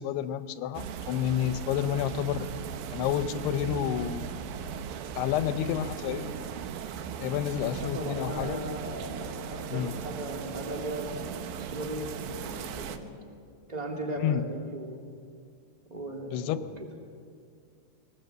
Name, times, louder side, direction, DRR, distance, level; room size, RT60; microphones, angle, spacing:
voice 1, 0.0-2.5 2.9-4.3 5.2-6.4 7.2-8.6 9.7-9.9 14.2-14.4 16.3-16.6, left 10 dB, 80° left, 11 dB, 2.7 m, -30 dB
sound 1, 0.7-13.0, right 7 dB, 70° right, 2.5 m, -38 dB
voice 2, 7.8-13.1 13.7-15.0 15.9-16.7, right 1 dB, 15° right, 1 dB, 1.6 m, -37 dB
21.5 x 20.0 x 8.1 m, 2.3 s
omnidirectional pair, 4.7 m